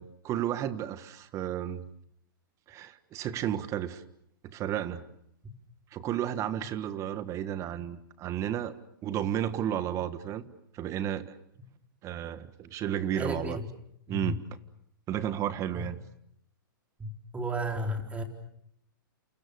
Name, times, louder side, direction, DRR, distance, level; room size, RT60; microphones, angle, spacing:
voice 1, 0.0-1.8 2.7-4.0 4.4-5.0 5.9-8.7 9.0-10.4 10.7-11.4 12.0-13.6 14.1-14.4 15.1-16.0, right 10 dB, 25° right, 13 dB, 1.6 m, -32 dB
voice 2, 13.1-13.6 14.1-14.3 15.7-15.9 17.0-18.2, right 1 dB, 10° right, 4 dB, 4.2 m, -33 dB
29.0 x 28.5 x 6.8 m, 0.72 s
hypercardioid pair, 130°, 11 cm